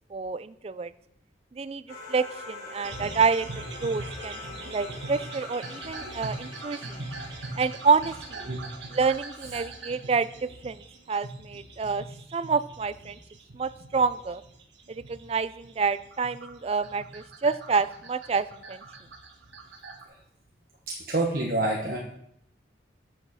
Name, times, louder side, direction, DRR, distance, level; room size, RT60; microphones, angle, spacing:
voice 1, 0.1-0.9 1.5-1.8 2.1-3.5 3.8-7.0 7.6-8.1 8.4-8.5 8.9-10.8 11.1-12.0 12.3-13.2 13.5-14.4 14.9-18.8, right 5 dB, 35° right, 15 dB, 0.3 m, -28 dB
sound 1, 1.9-10.5, left 2 dB, 50° left, 4.3 m, -44 dB
sound 2, 2.8-20.1, right 2 dB, 80° right, 1.4 m, -42 dB
voice 2, 20.9-22.0, right 2 dB, 50° right, -1 dB, 1.2 m, -27 dB
8.0 x 7.1 x 6.3 m, 0.75 s
head